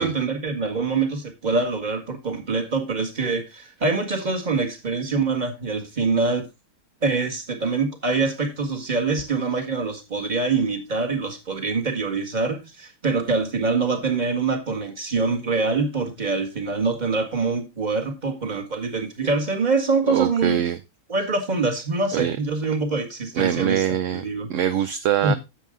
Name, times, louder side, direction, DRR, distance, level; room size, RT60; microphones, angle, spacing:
voice 1, 0.0-6.5 7.0-20.6 21.1-24.5 25.2-25.4, right 4 dB, 30° right, 1.9 m, -24 dB
voice 2, 20.1-20.8 22.1-22.4 23.3-24.2 24.5-25.3, right 10 dB, 65° right, 0.9 m, -23 dB
10.0 x 7.6 x 3.7 m
omnidirectional pair, 1.6 m